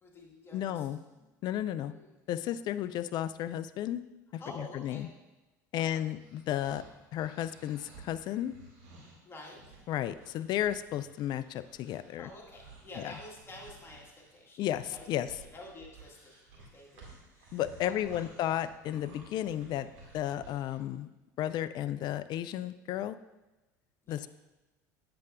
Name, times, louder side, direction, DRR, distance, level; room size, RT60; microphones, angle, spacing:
voice 1, 0.0-1.3 1.9-2.3 4.4-5.1 5.8-6.0 9.2-9.8 12.2-14.6 14.9-18.2 24.0-24.2, left 1 dB, 25° left, -2 dB, 1.7 m, -50 dB
voice 2, 0.5-1.0 1.4-1.9 2.3-4.0 4.3-5.1 5.7-6.8 7.1-8.5 9.9-12.3 13.0-13.1 14.6-15.3 17.5-21.1 21.4-23.2 24.1-24.3, left 11 dB, 50° left, 14 dB, 0.3 m, -33 dB
sound 1, 6.2-20.8, right 3 dB, 70° right, 2.1 m, -55 dB
8.3 x 6.7 x 2.4 m, 1.1 s
hypercardioid pair, 75°, 10 cm